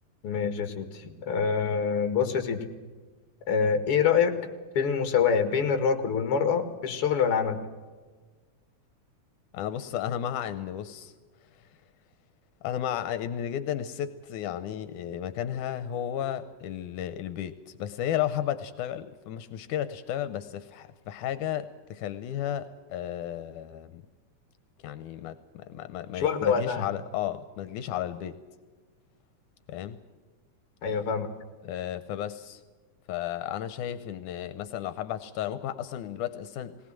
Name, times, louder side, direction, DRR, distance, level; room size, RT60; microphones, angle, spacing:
voice 1, 0.2-2.6 3.5-4.3 4.7-7.6 26.1-26.9 30.8-31.3, left 6 dB, 50° left, 8 dB, 2.5 m, -25 dB
voice 2, 9.5-11.1 12.6-24.0 24.8-28.4 29.7-30.0 31.6-32.6 33.1-36.8, left 10 dB, 80° left, 13 dB, 2.3 m, -33 dB
19.5 x 19.5 x 7.6 m, 1.4 s
omnidirectional pair, 3.5 m